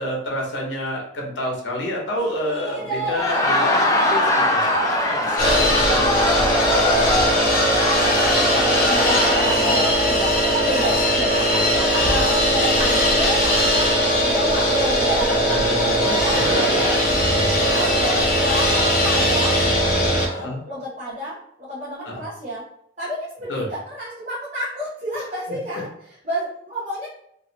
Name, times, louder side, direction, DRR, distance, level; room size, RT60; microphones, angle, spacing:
voice 1, 0.0-4.6 5.1-6.3 15.3-16.8 20.3-20.6 22.0-22.2 23.5-23.7, equal, 80° left, -2 dB, 0.9 m, -28 dB
sound 1, 2.2-18.6, right 1 dB, ahead, 1.3 m, -32 dB
Laughter, 3.0-9.9, left 1 dB, 20° left, 0.4 m, -22 dB
sound 2, 5.4-20.3, equal, 45° left, 0.9 m, -19 dB
voice 2, 8.2-15.6 16.0-16.9 17.7-22.7 23.0-25.9 26.2-27.1, equal, 40° right, -8 dB, 0.9 m, -30 dB
3.0 x 2.6 x 2.7 m, 0.74 s
head